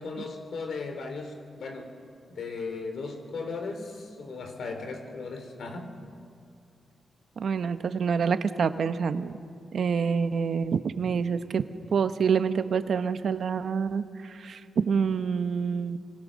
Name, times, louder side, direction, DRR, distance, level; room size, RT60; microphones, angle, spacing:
voice 1, 0.0-1.9 2.3-5.9, left 4 dB, 80° left, 5 dB, 3.2 m, -36 dB
voice 2, 7.4-9.3 9.7-11.6 11.9-16.0, right 6 dB, 70° right, 11 dB, 0.9 m, -27 dB
25.0 x 24.5 x 6.4 m, 2.4 s
cardioid pair, 85°, 0 cm